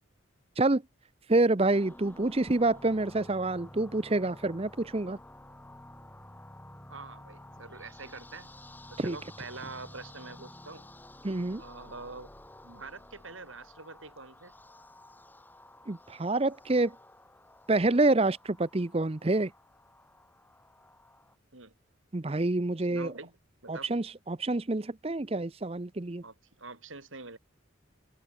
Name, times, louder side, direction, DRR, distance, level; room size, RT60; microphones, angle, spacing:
voice 1, 1.3-5.2 9.0-9.2 11.2-11.6 15.9-16.9 17.7-19.5 22.1-23.1 23.7-26.2, right 2 dB, 30° right, 0.7 m, -27 dB
sound 1, 1.6-21.3, left 1 dB, 10° left, 2.8 m, -52 dB
voice 2, 6.9-8.5 8.9-10.9 11.6-12.3 12.6-14.5 21.5-21.7 22.9-23.3 23.6-23.9 26.2-27.4, right 3 dB, 80° right, 7.7 m, -45 dB
head